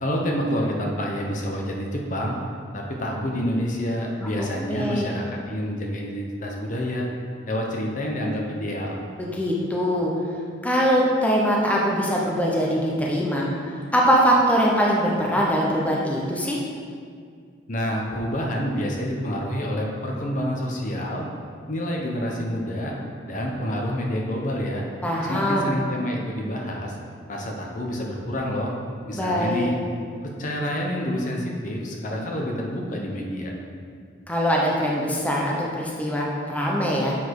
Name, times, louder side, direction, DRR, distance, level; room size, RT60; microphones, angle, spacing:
voice 1, 0.0-2.3 2.7-7.1 7.5-9.0 17.7-21.3 21.7-22.9 23.3-24.8 25.3-27.0 27.3-28.7 29.1-29.7 30.2-33.5, equal, 45° left, 0 dB, 1.0 m, -28 dB
voice 2, 4.2-5.1 9.2-10.1 10.6-13.4 13.9-16.6 25.0-25.7 29.1-29.7 34.3-37.2, equal, 10° left, -4 dB, 0.9 m, -22 dB
7.3 x 6.2 x 4.8 m, 2.1 s
head